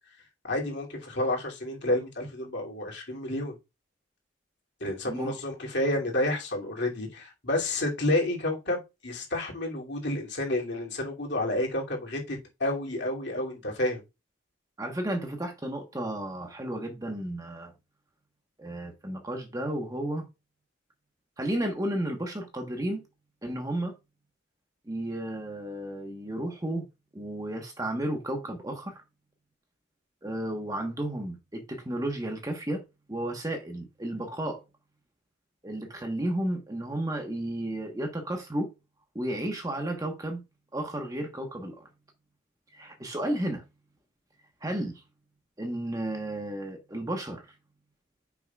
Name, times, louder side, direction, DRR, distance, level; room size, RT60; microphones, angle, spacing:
voice 1, 0.4-3.6 4.8-14.0, left 1 dB, 55° left, 2.8 m, -30 dB
voice 2, 14.8-17.7 18.6-20.3 21.4-23.0 23.4-23.9 24.9-26.8 27.1-29.0 30.2-32.8 33.1-34.6 35.6-38.7 39.1-40.4 40.7-41.8 42.7-43.6 44.6-45.0 45.6-47.4, right 1 dB, 15° right, 1.2 m, -33 dB
10.0 x 6.0 x 2.4 m
head